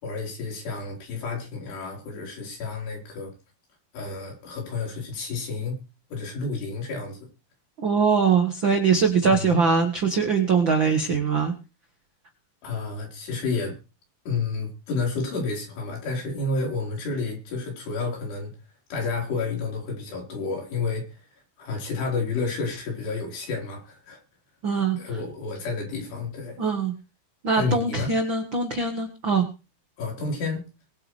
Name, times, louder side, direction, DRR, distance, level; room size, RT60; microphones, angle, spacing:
voice 1, 0.0-3.3 3.9-5.8 6.1-7.2 9.3-9.5 12.6-13.7 14.3-18.5 18.9-21.2 21.6-24.2 25.0-26.6 27.6-28.1 30.0-30.6, left 4 dB, 75° left, 6.4 m, -30 dB
voice 2, 7.8-11.5 24.6-25.0 26.6-26.9 27.4-29.4, right 5 dB, 75° right, 1.1 m, -22 dB
22.5 x 8.5 x 3.3 m
omnidirectional pair, 4.9 m